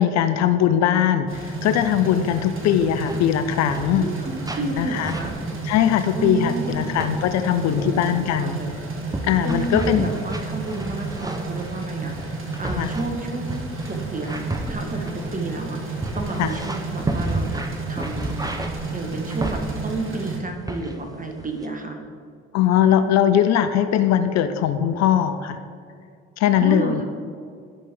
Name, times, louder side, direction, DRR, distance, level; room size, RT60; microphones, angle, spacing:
voice 1, 0.0-4.1 4.8-5.1 5.6-8.6 9.2-10.1 12.8-12.9 16.4-16.5 22.5-25.6 26.4-27.0, left 10 dB, 60° left, 10 dB, 0.6 m, -20 dB
sound 1, 1.3-20.4, right 3 dB, 45° right, 1.7 m, -32 dB
sound 2, 2.9-3.2 3.5-4.2 4.4-4.8 5.0-6.4 6.8-7.1 7.6-7.9 8.5-20.1 20.7-21.1 21.4-21.7, right 2 dB, 10° right, 0.9 m, -32 dB
voice 2, 4.0-5.4 6.1-6.9 7.7-8.0 8.3-8.7 9.4-17.6 17.9-22.0 26.6-27.0, right 3 dB, 25° right, 3 dB, 1.6 m, -31 dB
13.0 x 5.3 x 3.8 m, 2.2 s
hypercardioid pair, 50°, 30 cm